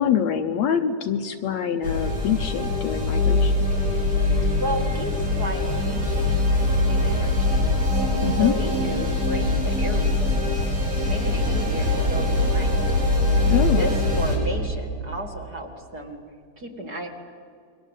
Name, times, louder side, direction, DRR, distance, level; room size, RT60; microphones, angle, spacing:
voice 1, 0.0-3.5 8.2-8.5 13.5-13.9, left 8 dB, 65° left, 7 dB, 2.0 m, -24 dB
sound 1, 1.8-14.4, left 2 dB, 75° right, 7.8 m, -22 dB
voice 2, 4.6-6.3 6.7-7.7 8.4-10.6 11.1-12.8 13.7-16.2 16.6-17.1, equal, 30° right, 3 dB, 2.5 m, -33 dB
29.0 x 23.5 x 8.3 m, 2.2 s
omnidirectional pair, 3.7 m